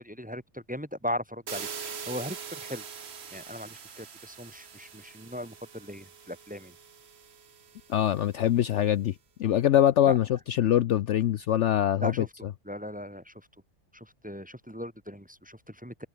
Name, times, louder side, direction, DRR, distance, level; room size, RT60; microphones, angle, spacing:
voice 1, 0.0-2.8 3.3-6.7 10.0-10.2 12.0-13.5 13.9-16.1, equal, 5° right, 1.5 m, -38 dB
sound 1, 1.5-8.3, right 6 dB, 50° right, 1.5 m, -43 dB
voice 2, 7.9-9.1 9.4-12.1, left 11 dB, 65° left, 0.9 m, -23 dB
omnidirectional pair, 1.5 m